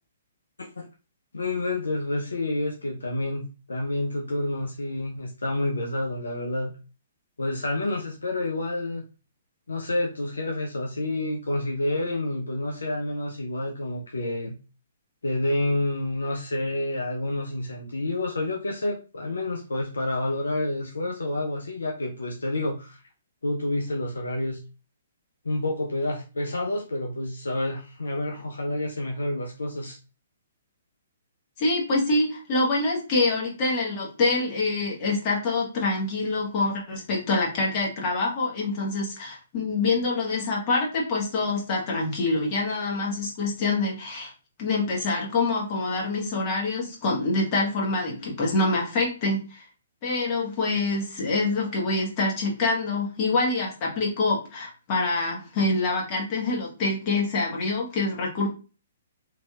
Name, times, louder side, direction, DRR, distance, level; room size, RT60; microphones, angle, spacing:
voice 1, 1.3-6.7 7.4-9.0 9.7-14.6 15.2-23.0 23.4-24.6 25.4-30.0, left 1 dB, 70° left, 1 dB, 0.5 m, -29 dB
voice 2, 31.6-44.3 44.6-49.6 50.0-58.5, left 3 dB, 35° left, -3 dB, 1.2 m, -26 dB
3.1 x 2.6 x 2.4 m, 0.34 s
figure-of-eight pair, 125°, 0 cm